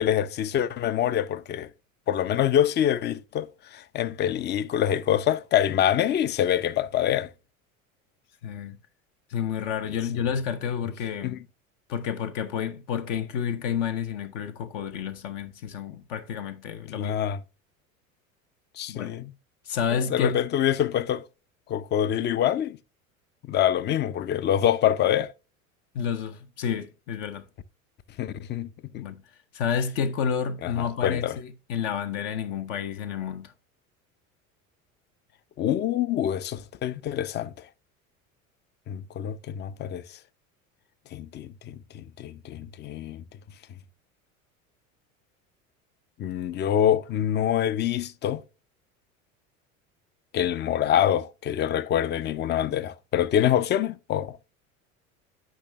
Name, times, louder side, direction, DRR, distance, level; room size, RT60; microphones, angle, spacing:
voice 1, 0.0-1.7 2.1-7.3 11.2-11.4 16.9-17.4 18.8-19.3 19.9-21.2 21.7-22.8 23.5-25.3 28.2-29.0 30.6-30.7 31.0-31.4 35.6-37.5 38.9-40.0 41.1-43.2 46.2-48.4 50.3-54.4, left 10 dB, 25° left, 0.4 m, -25 dB
voice 2, 8.4-8.8 9.3-11.4 11.9-17.2 18.9-19.1 19.6-20.4 25.9-27.5 28.9-29.2 29.5-33.5, left 7 dB, 60° left, 0.8 m, -30 dB
8.7 x 5.0 x 3.3 m
hypercardioid pair, 75°, 41 cm